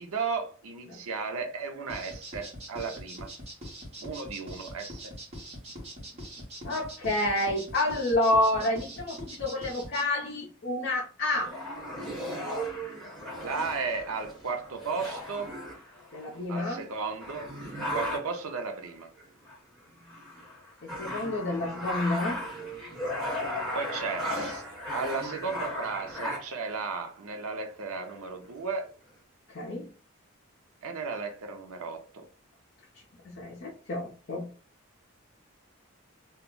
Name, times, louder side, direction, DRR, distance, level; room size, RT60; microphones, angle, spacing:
voice 1, 0.0-3.3 4.0-5.1 13.4-15.5 16.5-17.5 17.9-19.1 23.7-24.6 24.9-28.9 30.8-32.3, right 4 dB, 85° right, 0.6 m, -34 dB
sound 1, 1.9-10.0, equal, 30° right, 1.0 m, -42 dB
voice 2, 6.6-11.5 16.1-16.8 20.8-22.4 29.5-29.9 33.2-34.4, left 1 dB, 50° left, 0.5 m, -29 dB
sound 2, 11.3-16.4 16.9-17.0 17.2-18.5 19.2-19.6 19.9-26.7 27.5-27.6 27.9-28.7, equal, ahead, 0.9 m, -36 dB
2.2 x 2.0 x 3.6 m
head